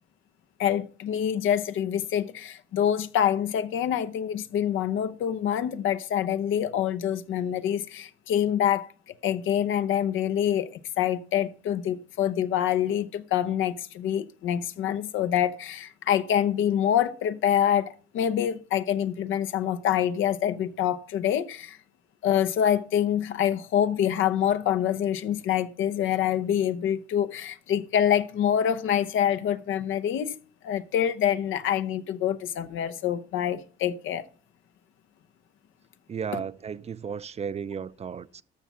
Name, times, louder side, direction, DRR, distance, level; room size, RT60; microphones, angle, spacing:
voice 1, 0.6-8.9 9.2-10.7 11.0-21.8 22.2-30.4 30.6-34.3, left 10 dB, 80° left, 0.8 m, -26 dB
voice 2, 36.1-38.4, right 6 dB, 35° right, 0.4 m, -34 dB
13.0 x 6.1 x 5.5 m
cardioid pair, 90°, 20 cm